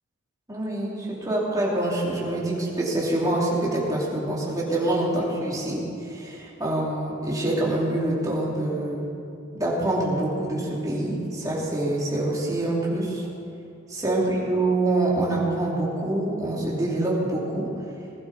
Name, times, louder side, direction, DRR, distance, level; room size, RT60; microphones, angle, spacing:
voice 1, 0.5-9.0 9.5-13.3 13.9-17.7, right 1 dB, 15° right, -6 dB, 3.0 m, -25 dB
20.0 x 11.5 x 4.2 m, 2.6 s
head